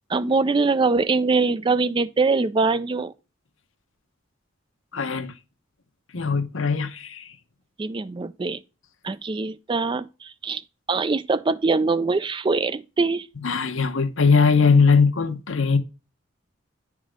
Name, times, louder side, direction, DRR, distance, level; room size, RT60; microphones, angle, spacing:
voice 1, 0.1-3.1 7.8-8.6 9.0-10.6 10.9-13.3, right 4 dB, 25° right, 0.3 m, -23 dB
voice 2, 4.9-5.3 6.1-7.3 13.4-15.8, left 5 dB, 75° left, 0.9 m, -20 dB
9.9 x 3.7 x 4.9 m
head